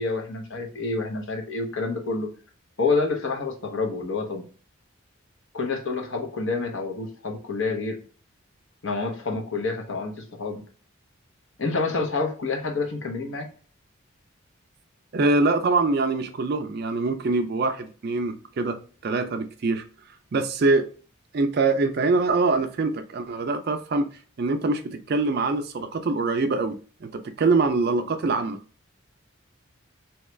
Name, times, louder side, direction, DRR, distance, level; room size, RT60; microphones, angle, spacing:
voice 1, 0.0-2.3 2.8-4.4 5.5-8.0 8.8-10.6 11.6-13.5, left 3 dB, 60° left, 0.7 m, -28 dB
voice 2, 15.1-18.8 19.0-19.8 20.3-20.9 21.3-24.1 24.4-26.8 27.0-28.6, right 3 dB, 50° right, 0.4 m, -24 dB
2.9 x 2.3 x 3.1 m
head